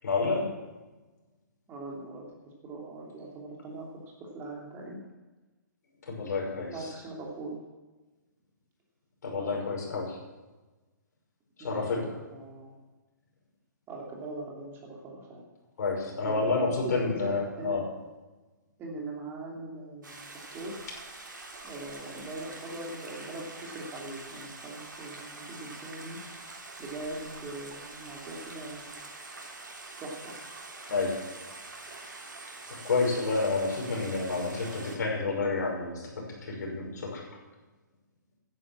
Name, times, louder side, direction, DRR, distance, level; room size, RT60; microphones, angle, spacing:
voice 1, 0.0-0.5 6.1-6.9 9.2-10.2 11.6-12.0 15.8-17.9 30.8-31.3 32.8-37.2, left 3 dB, 60° left, -1 dB, 5.7 m, -29 dB
voice 2, 1.7-2.2 2.6-5.0 6.7-7.6 9.3-9.6 11.6-12.7 13.9-15.5 16.2-17.8 18.8-20.9 21.6-26.2 26.8-28.9 30.0-30.4, right 2 dB, 20° right, -1 dB, 3.0 m, -41 dB
Stream, 20.0-35.0, right 3 dB, 75° right, 3.2 m, -45 dB
11.0 x 10.0 x 7.4 m, 1.2 s
figure-of-eight pair, 130°, 11 cm